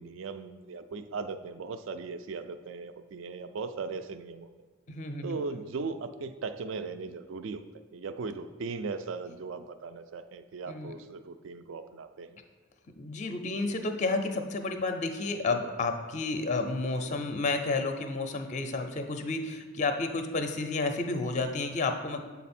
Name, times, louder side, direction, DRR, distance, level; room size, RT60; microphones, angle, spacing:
voice 1, 0.0-4.5 5.2-7.6 7.9-12.4, right 4 dB, 65° right, 10 dB, 0.4 m, -38 dB
voice 2, 4.9-5.4 10.7-10.9 12.9-22.2, left 3 dB, 35° left, 7 dB, 0.5 m, -31 dB
7.6 x 4.1 x 4.2 m, 1.3 s
head